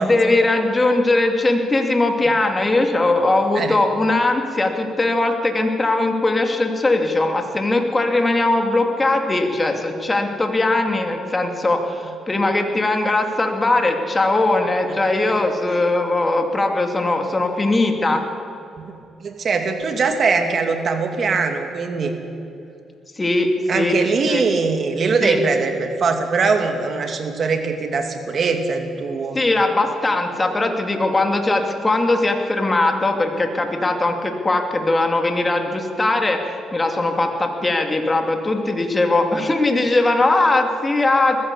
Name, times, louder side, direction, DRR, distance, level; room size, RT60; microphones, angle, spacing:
voice 1, 0.0-18.2 23.2-24.0 24.3-24.5 25.2-25.4 29.3-41.4, left 2 dB, 20° left, 4 dB, 2.6 m, -20 dB
voice 2, 19.2-22.2 23.7-29.4, right 4 dB, 50° right, 5 dB, 2.6 m, -21 dB
20.5 x 15.0 x 8.4 m, 2.6 s
cardioid pair, 90°, 0 cm